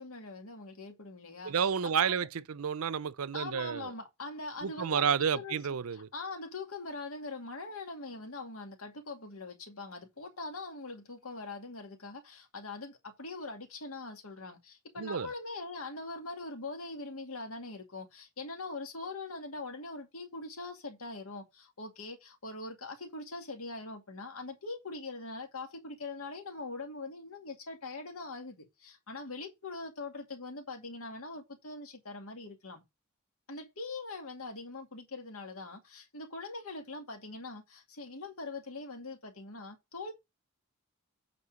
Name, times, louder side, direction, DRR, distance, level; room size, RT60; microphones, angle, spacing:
voice 1, 0.0-1.5 2.0-2.3 3.3-5.6 5.9-32.8 33.5-40.1, left 3 dB, 80° left, 2.2 m, -42 dB
voice 2, 1.4-3.9 4.6-6.1 15.0-15.3, right 7 dB, 85° right, 0.5 m, -31 dB
8.5 x 4.4 x 5.1 m
head